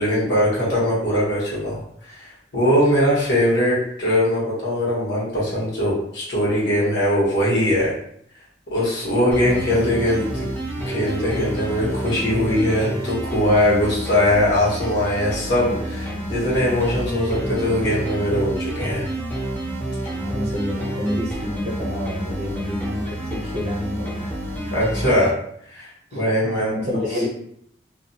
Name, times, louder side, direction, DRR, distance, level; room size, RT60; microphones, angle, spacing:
voice 1, 0.0-2.2 2.5-7.9 8.7-10.4 10.9-19.1 24.7-25.3 25.7-26.7, left 1 dB, 75° left, -7 dB, 1.2 m, -21 dB
sound 1, 9.3-25.3, right 1 dB, 10° left, 0.4 m, -29 dB
voice 2, 9.5-9.8 20.1-24.3 26.1-27.3, left 1 dB, 35° right, -4 dB, 0.7 m, -28 dB
2.6 x 2.1 x 2.7 m, 0.67 s
head